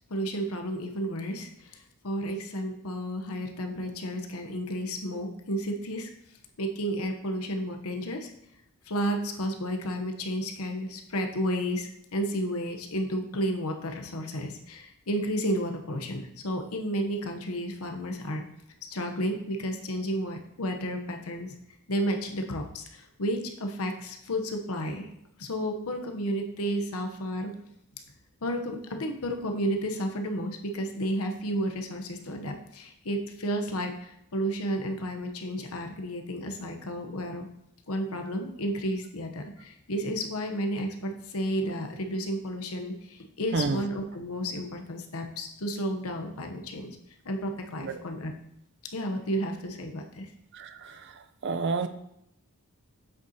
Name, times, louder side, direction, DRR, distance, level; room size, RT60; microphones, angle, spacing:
voice 1, 0.1-6.1 6.6-8.3 8.9-18.5 18.9-21.6 21.9-25.1 25.4-27.5 28.4-37.5 37.9-47.0 47.2-48.3 48.9-50.3, equal, 75° left, 4 dB, 0.9 m, -32 dB
voice 2, 50.5-51.1 51.4-51.9, right 4 dB, 50° right, 10 dB, 0.5 m, -29 dB
7.9 x 6.5 x 2.8 m, 0.76 s
head